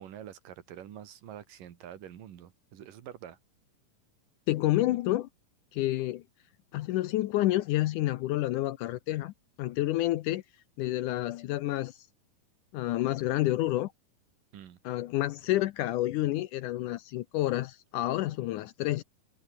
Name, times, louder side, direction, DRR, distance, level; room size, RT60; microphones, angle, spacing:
voice 1, 0.0-3.4 14.5-14.8, right 10 dB, 70° right, 3.5 m, -46 dB
voice 2, 4.5-5.3 5.7-6.2 6.7-9.3 9.6-10.4 10.8-12.0 12.7-13.9 14.8-19.0, left 16 dB, 75° left, 2.0 m, -29 dB
omnidirectional pair, 4.0 m